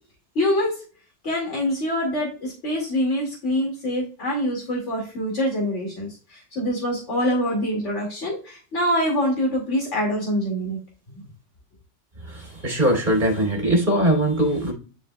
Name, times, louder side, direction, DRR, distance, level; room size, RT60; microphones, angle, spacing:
voice 1, 0.4-0.7 1.2-10.8, equal, 90° left, -2 dB, 2.6 m, -25 dB
voice 2, 12.2-14.7, right 1 dB, 45° right, 1 dB, 2.9 m, -21 dB
11.0 x 5.0 x 2.2 m, 0.36 s
omnidirectional pair, 1.2 m